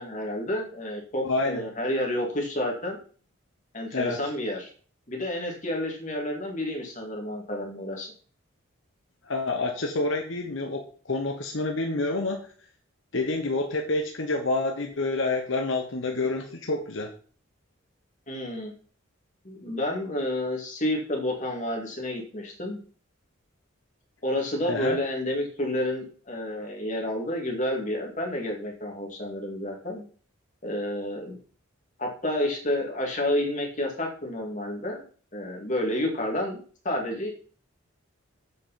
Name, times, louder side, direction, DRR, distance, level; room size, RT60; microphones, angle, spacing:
voice 1, 0.0-3.0 3.7-4.7 5.1-8.1 18.3-18.7 19.4-22.8 24.2-30.0 30.6-31.4 32.0-35.0 35.3-37.3, left 1 dB, 35° left, 1 dB, 2.2 m, -30 dB
voice 2, 1.2-1.6 3.9-4.2 9.3-12.4 13.1-17.1 24.7-25.0, left 2 dB, 70° left, 3 dB, 1.1 m, -28 dB
7.8 x 5.5 x 5.8 m, 0.43 s
head